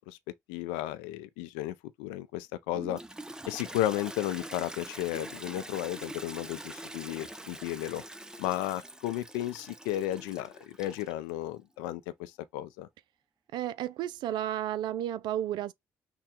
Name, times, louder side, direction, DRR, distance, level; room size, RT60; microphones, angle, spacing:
voice 1, 0.5-3.0 3.5-8.0 8.4-12.9, left 14 dB, 85° left, 0.5 m, -34 dB
Toilet flush, 2.7-11.3, right 1 dB, 10° right, 0.6 m, -44 dB
voice 2, 13.5-15.7, right 12 dB, 70° right, 0.4 m, -32 dB
5.9 x 2.3 x 3.7 m
hypercardioid pair, 55°, 8 cm